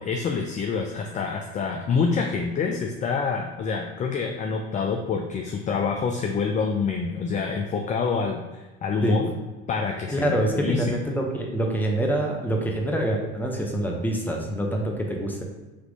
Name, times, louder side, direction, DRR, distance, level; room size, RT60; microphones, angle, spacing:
voice 1, 0.0-9.2 9.7-11.0, left 5 dB, 25° left, 2 dB, 0.4 m, -27 dB
voice 2, 10.1-15.4, right 1 dB, 5° left, 0 dB, 0.8 m, -25 dB
3.4 x 3.0 x 3.9 m, 1.1 s
hypercardioid pair, 80°, 31 cm